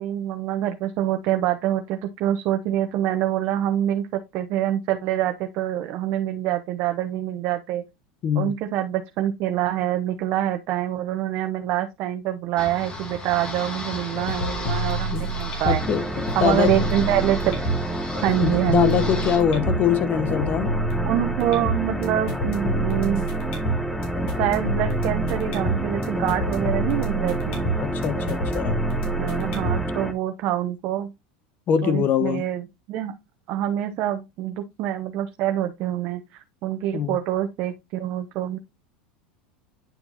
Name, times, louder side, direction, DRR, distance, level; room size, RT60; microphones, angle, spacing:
voice 1, 0.0-7.8 8.4-15.8 16.3-17.7 18.2-19.0 21.0-23.2 24.4-27.7 29.0-31.1 31.8-33.1 33.5-38.6, right 12 dB, 55° right, 0.8 m, -26 dB
voice 2, 8.2-8.5 15.1-15.3 15.6-16.1 16.4-16.7 18.4-20.7 27.8-28.8 31.7-32.4 36.9-37.2, left 8 dB, 45° left, 1.0 m, -23 dB
sound 1, 12.6-19.4, left 2 dB, 20° left, 1.8 m, -35 dB
sound 2, 13.9-29.9, right 1 dB, 75° left, 3.0 m, -29 dB
sound 3, 15.8-30.1, equal, ahead, 0.8 m, -29 dB
9.3 x 4.4 x 2.8 m
supercardioid pair, 110°, 4 cm